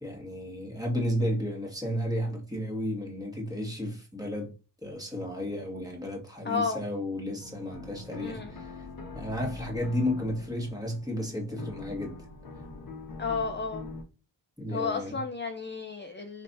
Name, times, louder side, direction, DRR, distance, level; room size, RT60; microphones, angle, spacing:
voice 1, 0.0-4.5 4.8-8.9 9.2-12.2 14.6-15.2, left 1 dB, 10° right, 1.9 m, -33 dB
voice 2, 6.4-6.8 8.2-8.6 13.2-13.9 14.7-16.4, left 4 dB, 25° left, 0.6 m, -32 dB
sound 1, 7.4-14.0, left 3 dB, 50° left, 1.0 m, -43 dB
5.1 x 3.2 x 2.7 m
cardioid pair, 55°, 44 cm